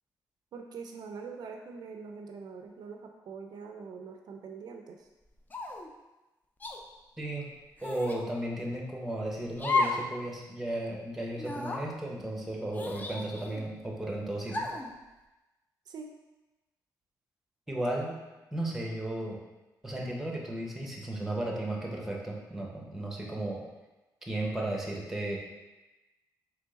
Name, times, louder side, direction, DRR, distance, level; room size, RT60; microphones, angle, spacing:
voice 1, 0.5-5.1 15.9-16.1 17.7-18.0, right 5 dB, 65° right, 3 dB, 0.4 m, -44 dB
sound 1, 5.5-5.9 6.6-6.8 7.8-8.2 9.6-10.1 10.4-10.5 11.4-11.8 12.7-13.6 14.5-14.9, left 3 dB, 25° left, 0.4 m, -32 dB
voice 2, 7.2-7.5 7.8-14.7 17.7-18.1 18.5-19.4 19.8-23.6 24.3-25.4, right 1 dB, 5° right, -1 dB, 0.8 m, -34 dB
3.6 x 3.1 x 3.9 m, 1.1 s
cardioid pair, 110°, 7 cm